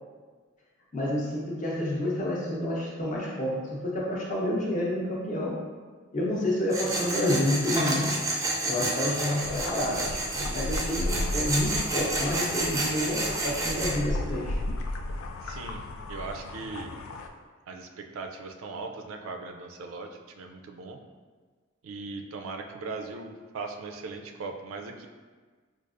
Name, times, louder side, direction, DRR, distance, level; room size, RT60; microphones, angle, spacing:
voice 1, 0.9-5.6 6.1-8.2 8.7-10.2 10.5-14.6, left 1 dB, 35° left, -4 dB, 0.7 m, -29 dB
Tools, 6.7-13.9, right 1 dB, 15° right, 0.4 m, -30 dB
sound 1, 9.4-17.3, left 1 dB, 85° left, 0.3 m, -35 dB
voice 2, 15.4-15.8 16.1-16.9 17.7-20.1 20.4-21.0 21.8-25.1, right 4 dB, 85° right, 4 dB, 0.4 m, -39 dB
4.6 x 2.4 x 2.4 m, 1.5 s
head